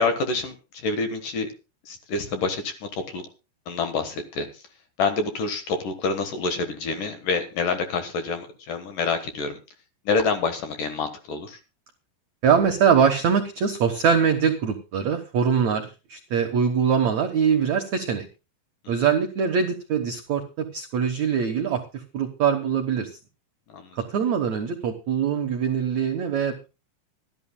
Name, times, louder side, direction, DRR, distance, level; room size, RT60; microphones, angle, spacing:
voice 1, 0.0-1.5 1.8-3.2 3.7-4.6 5.0-9.6 10.1-11.6 23.7-24.0, left 4 dB, 60° left, 7 dB, 2.5 m, -27 dB
voice 2, 12.4-18.3 18.9-23.2 23.9-26.7, right 7 dB, 85° right, 4 dB, 1.5 m, -23 dB
25.5 x 11.0 x 2.2 m, 0.31 s
omnidirectional pair, 5.2 m